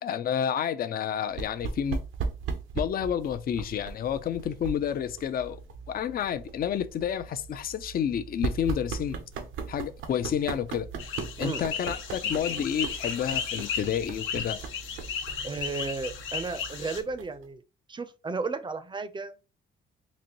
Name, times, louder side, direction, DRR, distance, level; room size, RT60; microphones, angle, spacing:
voice 1, 0.0-2.0 2.7-5.6 5.9-9.2 9.7-10.9 11.4-14.6, left 9 dB, 50° left, 0.5 m, -30 dB
sound 1, 1.3-17.5, right 5 dB, 80° right, 0.7 m, -38 dB
sound 2, 11.0-17.0, left 7 dB, 80° left, 0.8 m, -34 dB
voice 2, 15.4-17.6 17.9-19.3, right 4 dB, 25° right, 0.5 m, -34 dB
4.1 x 2.5 x 2.9 m
cardioid pair, 90°, 20 cm